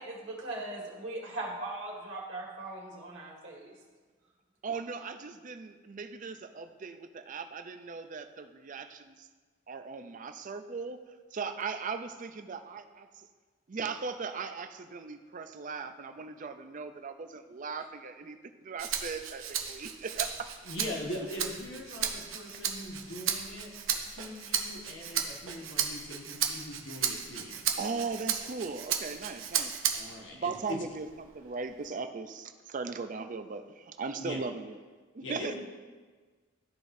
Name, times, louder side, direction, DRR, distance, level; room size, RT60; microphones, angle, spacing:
voice 1, 0.0-3.7, right 2 dB, 65° right, -3 dB, 1.8 m, -39 dB
voice 2, 4.6-9.3 9.7-11.0 11.3-13.0 13.7-18.4 18.6-20.5 20.9-21.1 25.6-25.7 27.8-29.8 30.3-34.8 35.1-35.6, right 4 dB, 40° right, 8 dB, 0.4 m, -38 dB
Rattle (instrument), 18.8-30.2 30.7-31.9, right 8 dB, 90° right, 0.7 m, -35 dB
voice 3, 20.6-23.7 24.1-27.6 29.9-30.8 34.2-34.4 35.2-35.6, left 1 dB, 65° left, -1 dB, 1.4 m, -41 dB
13.0 x 4.9 x 2.6 m, 1.4 s
head